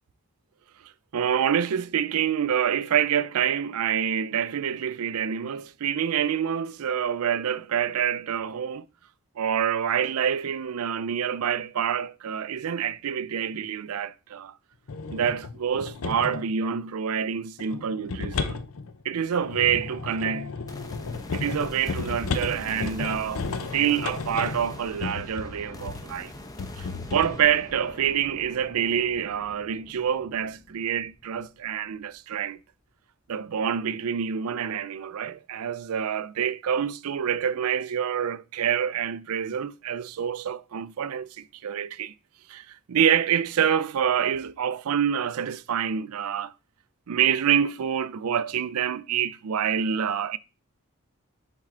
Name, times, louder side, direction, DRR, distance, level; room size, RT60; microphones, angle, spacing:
voice 1, 1.1-8.9 9.4-14.5 15.1-18.6 19.0-20.5 21.3-23.4 23.7-26.3 26.8-32.6 33.3-42.1 42.5-46.5 47.1-50.4, right 8 dB, 90° right, 0.4 m, -27 dB
sound 1, 14.9-16.5 17.6-26.1 26.6-27.4, left 4 dB, 80° left, 0.7 m, -33 dB
sound 2, 20.7-32.0, left 1 dB, 15° left, 0.7 m, -43 dB
7.3 x 4.5 x 3.8 m
head